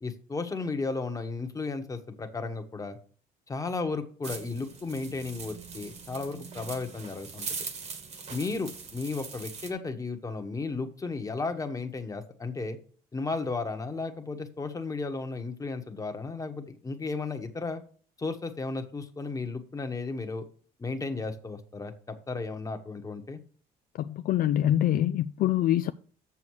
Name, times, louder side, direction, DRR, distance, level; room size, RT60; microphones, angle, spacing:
voice 1, 0.0-3.0 3.5-7.6 8.3-12.8 13.1-17.8 18.2-20.5 20.8-23.4, left 3 dB, 20° left, 1.3 m, -34 dB
sound 1, 4.2-9.7, right 5 dB, 40° right, 1.5 m, -41 dB
voice 2, 24.0-25.9, left 12 dB, 55° left, 0.4 m, -25 dB
7.1 x 6.9 x 4.7 m
cardioid pair, 110°, 17 cm